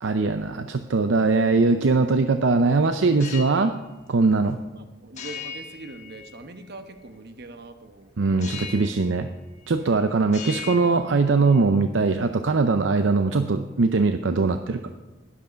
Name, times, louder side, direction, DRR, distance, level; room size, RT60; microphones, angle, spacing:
voice 1, 0.0-3.7 4.1-4.6 8.2-9.3 9.7-14.8, right 3 dB, 75° right, 8 dB, 0.6 m, -21 dB
sound 1, 3.2-3.7 5.2-6.6 8.4-9.1 9.4-10.0 10.2-11.6, left 6 dB, 40° left, 1.5 m, -38 dB
voice 2, 4.7-9.0, right 2 dB, 60° right, 8 dB, 1.1 m, -43 dB
12.5 x 11.0 x 5.2 m, 1.1 s
head